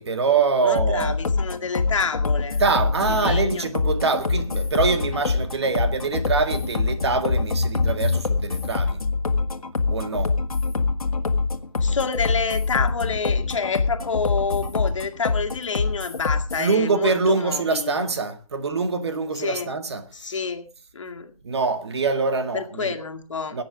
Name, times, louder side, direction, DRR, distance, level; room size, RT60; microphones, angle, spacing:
voice 1, 0.0-1.2 2.6-9.0 9.9-10.4 16.6-20.4 21.4-23.0 23.5-23.6, right 4 dB, 45° right, 1.8 m, -24 dB
voice 2, 0.6-2.6 3.1-3.7 11.8-18.1 19.3-19.7 20.1-21.4 22.5-23.6, left 5 dB, 55° left, 2.1 m, -28 dB
sound 1, 0.8-16.7, left 4 dB, 75° left, 1.9 m, -25 dB
19.5 x 9.1 x 4.9 m
figure-of-eight pair, 160°, 19 cm